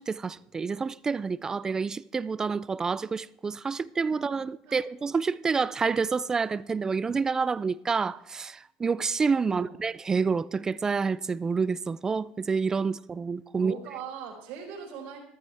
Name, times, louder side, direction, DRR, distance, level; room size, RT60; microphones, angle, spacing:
voice 1, 0.0-13.7, right 5 dB, 20° right, 0.3 m, -28 dB
voice 2, 9.5-9.8 13.6-15.2, right 7 dB, 75° right, 4.4 m, -40 dB
14.0 x 13.0 x 3.5 m
cardioid pair, 130°, 3 cm